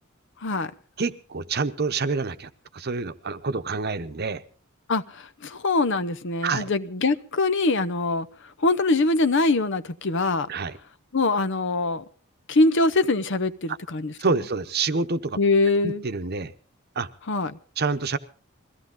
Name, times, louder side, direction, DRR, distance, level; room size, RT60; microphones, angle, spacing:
voice 1, 0.4-0.7 4.9-8.3 8.6-10.5 11.1-12.0 12.5-14.1 15.4-16.0 17.3-17.6, left 3 dB, 60° left, 0.8 m, -23 dB
voice 2, 1.0-4.4 6.4-6.7 10.5-10.8 13.7-13.8 14.2-15.4 15.8-16.5 17.0-17.1 17.8-18.2, right 4 dB, 50° right, 0.9 m, -27 dB
22.0 x 16.0 x 3.8 m
head